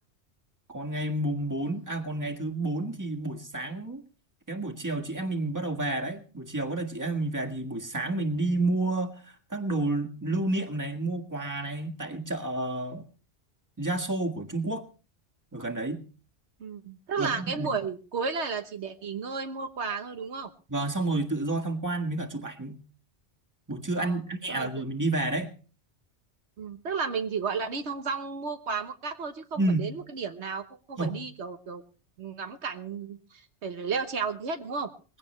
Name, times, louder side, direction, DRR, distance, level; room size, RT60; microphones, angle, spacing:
voice 1, 0.7-4.0 4.5-13.0 13.8-14.8 15.5-16.0 17.2-17.8 20.7-22.8 23.7-25.5 29.6-29.9 31.0-31.2, right 2 dB, 15° right, 3 dB, 1.6 m, -30 dB
voice 2, 16.6-20.5 24.0-24.2 24.5-24.7 26.6-31.8 32.2-34.9, right 5 dB, 80° right, 7 dB, 1.3 m, -33 dB
20.5 x 16.0 x 3.2 m, 0.37 s
omnidirectional pair, 1.2 m